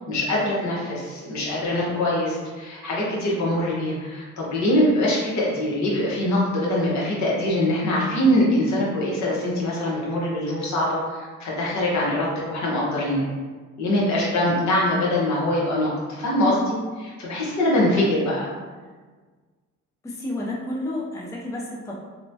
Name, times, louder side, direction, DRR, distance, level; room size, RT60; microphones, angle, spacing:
voice 1, 0.0-13.2 13.8-18.5, left 1 dB, 65° left, -5 dB, 1.0 m, -23 dB
voice 2, 17.9-18.2 20.0-22.0, left 1 dB, 10° left, -3 dB, 0.4 m, -31 dB
3.0 x 2.1 x 2.6 m, 1.4 s
cardioid pair, 90°, 30 cm